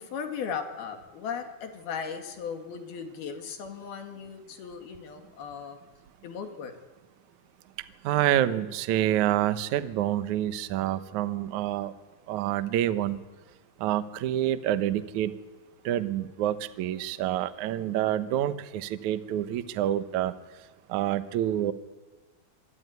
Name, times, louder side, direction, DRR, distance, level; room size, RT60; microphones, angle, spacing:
voice 1, 0.0-5.8 6.2-6.7, left 6 dB, 75° left, 6 dB, 4.0 m, -37 dB
voice 2, 8.0-11.9 12.3-13.2 13.8-15.3 15.9-20.3 20.9-21.7, right 12 dB, 65° right, 12 dB, 2.1 m, -27 dB
25.5 x 24.0 x 9.6 m, 1.2 s
omnidirectional pair, 4.5 m